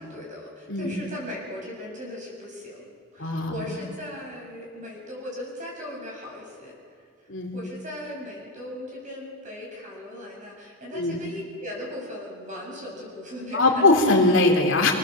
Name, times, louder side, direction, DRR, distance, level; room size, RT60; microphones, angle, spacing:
voice 1, 0.0-6.7 7.5-13.8, left 1 dB, 35° right, -2 dB, 7.6 m, -38 dB
voice 2, 0.7-1.0 3.2-3.8 7.3-7.6 10.9-11.2 13.5-14.9, left 2 dB, 60° left, 1 dB, 3.2 m, -21 dB
27.0 x 17.5 x 7.6 m, 2.2 s
head